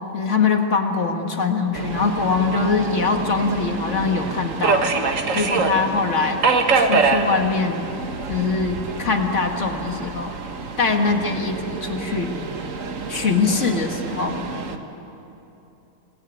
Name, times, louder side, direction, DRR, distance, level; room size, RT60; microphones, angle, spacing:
voice 1, 0.1-4.9 5.3-6.4 6.7-7.8 8.3-10.3 10.8-12.4 13.1-14.4, left 4 dB, 45° left, 4 dB, 2.2 m, -22 dB
Subway metro underground, 1.7-14.8, right 4 dB, 50° right, 1.6 m, -26 dB
27.5 x 19.0 x 9.3 m, 3.0 s
omnidirectional pair, 1.7 m